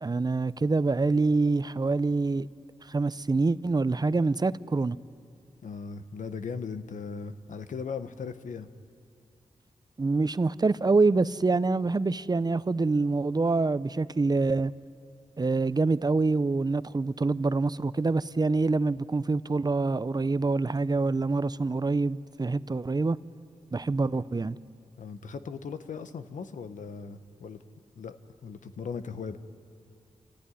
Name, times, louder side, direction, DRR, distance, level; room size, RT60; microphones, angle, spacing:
voice 1, 0.0-2.5 2.9-5.0 10.0-14.7 15.4-23.2 23.7-24.6, right 3 dB, 30° right, 0.6 m, -26 dB
voice 2, 5.6-8.7 25.0-27.6 28.0-28.2 28.4-29.4, left 5 dB, 85° left, 1.0 m, -38 dB
28.5 x 15.0 x 10.0 m
cardioid pair, 55°, 13 cm